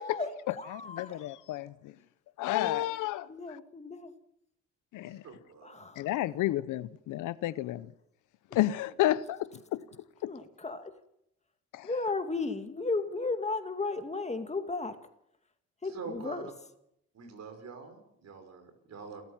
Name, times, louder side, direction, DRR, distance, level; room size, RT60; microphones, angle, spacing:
voice 1, 0.0-1.2 2.6-3.0 3.3-4.1 5.6-6.1 8.5-8.6 10.3-10.9 11.8-15.0 15.8-16.5, left 3 dB, 20° left, 2.2 m, -35 dB
voice 2, 0.7-1.9 2.4-3.3 4.9-5.2 6.0-7.9 8.5-9.8 10.2-10.3 11.7-11.9, left 14 dB, 85° left, 0.9 m, -31 dB
voice 3, 5.1-5.9 15.9-16.4 17.1-19.2, right 4 dB, 60° right, 5.5 m, -45 dB
29.0 x 13.5 x 7.4 m
cardioid pair, 90°, 30 cm